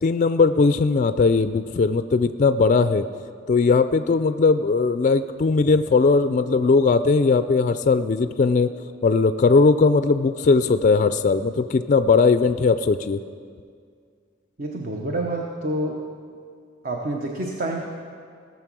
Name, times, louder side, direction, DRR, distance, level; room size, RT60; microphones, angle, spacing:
voice 1, 0.0-3.1 3.5-8.7 9.0-13.2, left 4 dB, 40° left, 11 dB, 0.4 m, -19 dB
voice 2, 14.6-16.0 16.8-17.9, right 1 dB, 50° right, 1 dB, 0.9 m, -28 dB
18.0 x 7.1 x 6.1 m, 2.1 s
head